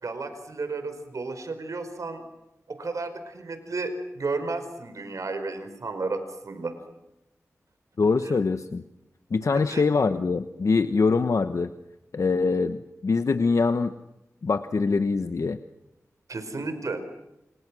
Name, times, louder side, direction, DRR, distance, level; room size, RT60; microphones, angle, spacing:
voice 1, 0.0-2.2 2.7-6.7 9.7-9.8 16.3-17.0, right 3 dB, 70° right, 9 dB, 5.1 m, -32 dB
voice 2, 8.0-8.8 9.3-11.7 12.1-13.9 14.4-15.6, left 4 dB, 65° left, 10 dB, 1.1 m, -23 dB
29.5 x 29.0 x 6.3 m, 0.93 s
wide cardioid pair, 90°, 6 cm